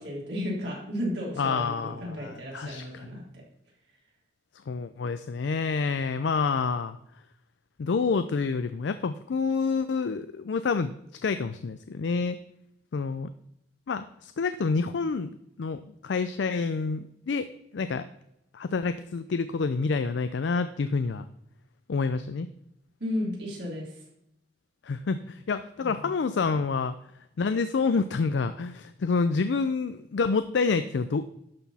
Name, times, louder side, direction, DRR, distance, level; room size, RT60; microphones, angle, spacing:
voice 1, 0.0-3.4 23.0-24.0 25.8-26.1, left 1 dB, 65° right, -3 dB, 3.3 m, -34 dB
voice 2, 1.4-3.1 4.7-7.0 7.8-10.9 11.2-12.4 12.9-13.3 13.9-15.3 15.6-17.5 17.7-18.1 18.5-21.3 21.9-22.5 24.8-27.0 27.4-31.2, left 4 dB, 80° left, 11 dB, 0.4 m, -28 dB
11.5 x 6.0 x 4.1 m, 0.79 s
head